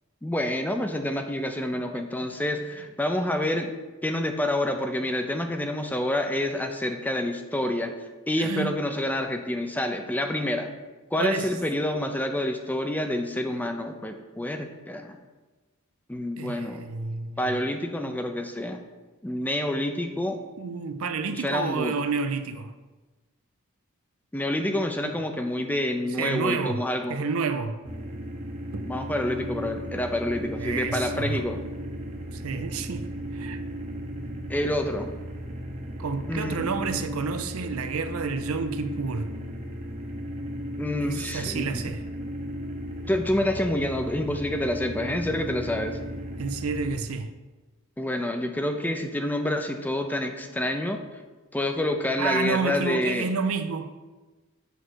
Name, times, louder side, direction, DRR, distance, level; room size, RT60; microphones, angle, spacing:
voice 1, 0.2-3.7 4.0-7.9 8.3-10.7 11.1-15.2 16.1-16.8 17.4-18.8 19.2-20.4 21.3-21.9 24.3-27.2 28.8-31.6 34.5-35.1 36.3-36.7 40.8-41.7 43.0-46.0 48.0-51.0 51.5-53.3, left 1 dB, 10° left, 0.4 m, -28 dB
voice 2, 8.3-8.8 11.2-11.6 16.4-17.6 20.6-22.7 25.0-25.1 26.2-27.8 28.7-28.9 30.5-31.4 32.3-33.6 36.0-39.4 41.0-42.1 46.4-47.3 52.2-53.9, right 4 dB, 70° right, 0.5 m, -30 dB
sound 1, 27.8-47.0, equal, 30° right, 0.8 m, -36 dB
8.1 x 3.2 x 6.2 m
head